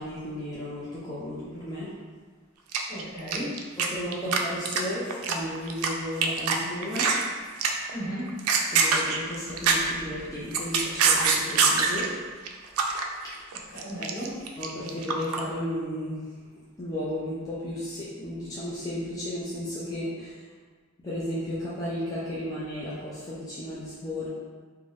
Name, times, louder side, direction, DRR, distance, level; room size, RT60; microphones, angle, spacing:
voice 1, 0.0-1.9 3.8-7.2 8.7-12.1 13.2-13.5 14.6-16.2 16.8-20.4 21.0-24.3, left 1 dB, 15° left, -9 dB, 0.5 m, -34 dB
sound 1, 2.7-3.9 4.1-4.4 4.6-5.9 6.2-6.5 6.8-7.2 7.6-7.9 8.3-10.0 10.4-12.1 12.5-13.0 13.3-15.4, right 5 dB, 80° right, 0.3 m, -24 dB
voice 2, 2.9-3.7 7.9-8.5 13.7-14.5, equal, 55° left, -8 dB, 1.1 m, -35 dB
2.6 x 2.2 x 3.3 m, 1.5 s
head